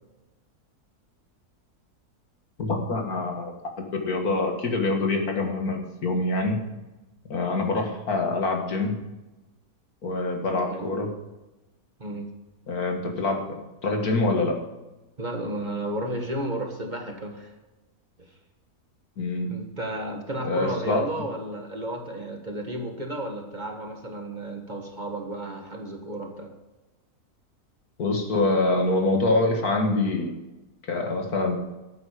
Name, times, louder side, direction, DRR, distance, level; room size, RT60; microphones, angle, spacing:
voice 1, 2.6-6.6 7.3-9.0 10.0-11.1 12.7-14.6 19.2-19.5 20.4-21.0 28.0-30.3 30.9-31.6, left 2 dB, 70° left, 2 dB, 2.3 m, -25 dB
voice 2, 10.5-11.0 12.0-12.3 15.2-17.5 18.2-18.3 19.5-26.5, right 1 dB, 30° right, 2 dB, 1.6 m, -33 dB
13.0 x 9.1 x 5.0 m, 1.1 s
omnidirectional pair, 1.7 m